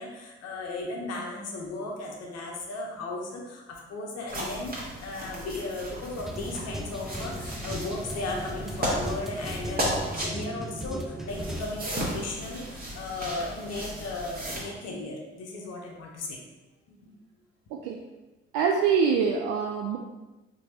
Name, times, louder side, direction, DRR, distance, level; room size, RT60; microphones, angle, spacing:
voice 1, 0.0-16.4 16.9-17.0, left 2 dB, 50° left, -1 dB, 0.8 m, -36 dB
sound 1, 4.3-10.3 11.3-14.6, equal, 25° right, 1.4 m, -35 dB
sound 2, 5.4-11.6, equal, ahead, 0.4 m, -37 dB
voice 2, 17.7-18.0 18.5-20.0, right 6 dB, 65° right, 1 dB, 0.4 m, -24 dB
4.4 x 2.8 x 2.8 m, 1.1 s
figure-of-eight pair, 45°, 33 cm